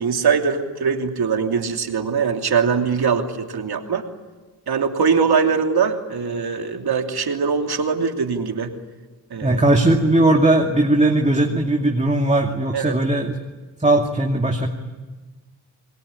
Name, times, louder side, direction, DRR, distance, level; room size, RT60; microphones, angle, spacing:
voice 1, 0.0-4.0 4.7-8.7 9.3-9.6 12.7-12.9, right 6 dB, 60° right, 4 dB, 3.1 m, -22 dB
voice 2, 9.4-13.4 13.8-14.7, right 1 dB, 15° right, 1 dB, 2.5 m, -18 dB
27.5 x 20.5 x 10.0 m, 1.3 s
cardioid pair, 60°, 43 cm